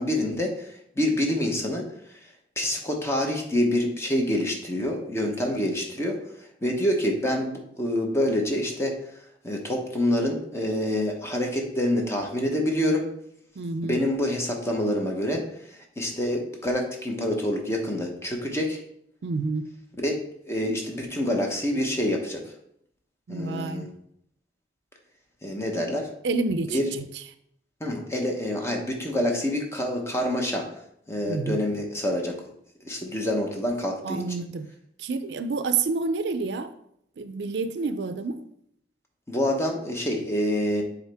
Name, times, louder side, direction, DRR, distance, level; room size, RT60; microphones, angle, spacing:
voice 1, 0.0-1.8 2.6-6.2 6.6-8.9 9.4-13.0 13.8-15.4 16.0-18.8 20.0-20.2 20.5-22.4 23.3-23.9 25.4-26.1 26.7-26.8 27.8-30.7 31.1-32.3 32.8-34.4 39.3-40.8, left 1 dB, 15° left, 1.0 m, -26 dB
voice 2, 13.6-14.0 19.2-19.6 23.3-23.9 26.2-27.1 31.3-31.6 34.0-34.7 35.0-36.7 37.2-38.4, right 4 dB, 75° right, 0.4 m, -28 dB
7.1 x 4.0 x 3.5 m
head